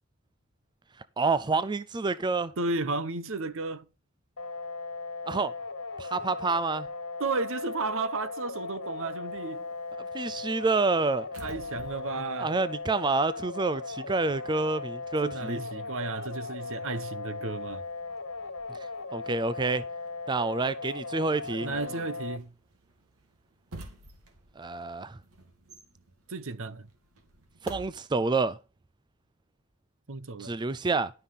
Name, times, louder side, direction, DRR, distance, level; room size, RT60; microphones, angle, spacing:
voice 1, 1.2-2.5 5.3-5.5 6.0-6.9 10.1-11.3 12.4-15.6 19.1-19.8 20.3-21.7 24.6-25.2 27.7-28.6 30.4-31.1, right 3 dB, 20° right, 0.4 m, -28 dB
voice 2, 2.6-3.8 7.2-9.6 11.4-12.5 15.2-17.8 21.6-22.5 26.3-26.9 30.1-30.6, right 3 dB, 65° right, 0.9 m, -33 dB
sound 1, 4.4-22.4, left 3 dB, 80° left, 1.9 m, -38 dB
sound 2, 9.3-13.7 14.0-27.9, right 2 dB, 85° right, 2.3 m, -51 dB
11.5 x 5.6 x 5.6 m
head